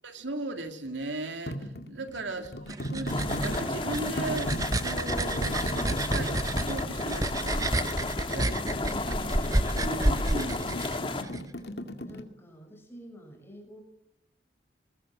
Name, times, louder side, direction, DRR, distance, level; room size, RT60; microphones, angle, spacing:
voice 1, 0.0-7.7 8.1-8.6 9.7-10.8, right 2 dB, 85° right, 6 dB, 2.8 m, -37 dB
sound 1, 1.5-12.2, equal, 60° left, 2.2 m, -38 dB
voice 2, 1.8-2.6 8.1-9.7 12.0-13.8, equal, 10° left, 4 dB, 5.9 m, -48 dB
sound 2, 2.4-11.4, right 1 dB, 20° right, 0.8 m, -30 dB
sound 3, 3.1-11.2, left 2 dB, 30° left, 1.9 m, -33 dB
22.0 x 20.0 x 7.6 m, 0.73 s
head